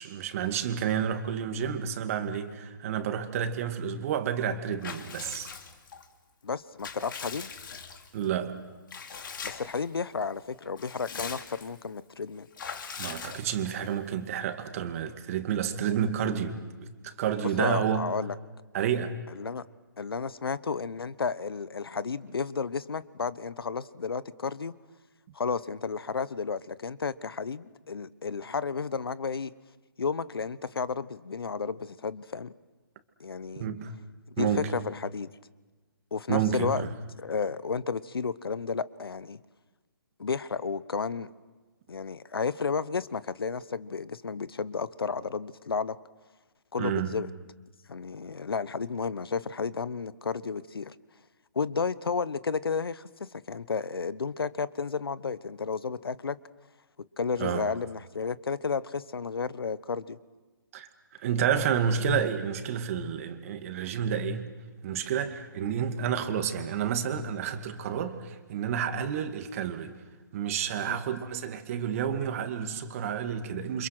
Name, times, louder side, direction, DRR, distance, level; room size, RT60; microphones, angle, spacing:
voice 1, 0.0-5.5 8.1-8.5 13.0-18.1 18.7-19.1 33.6-33.9 34.4-34.7 36.3-36.9 46.8-47.1 57.4-57.7 60.7-60.9 61.2-64.5 64.8-69.9 70.3-73.9, right 8 dB, 40° right, 7 dB, 2.3 m, -30 dB
Water / Bathtub (filling or washing) / Liquid, 4.8-6.1 6.5-8.2 8.9-9.8 10.2-10.3 10.6-11.8 12.6-13.8, left 6 dB, 60° left, 2.7 m, -41 dB
voice 2, 6.4-7.5 9.4-12.5 17.4-18.3 19.3-19.6 20.0-24.7 25.3-29.5 30.0-32.5 33.2-33.7 34.3-35.3 36.1-36.9 37.2-39.4 40.2-41.3 41.9-46.0 46.7-47.3 47.9-50.9 51.5-56.4 57.2-60.2 70.9-71.0, left 5 dB, 85° left, 18 dB, 1.0 m, -32 dB
29.0 x 26.0 x 6.0 m, 1.3 s
hypercardioid pair, 155°, 12 cm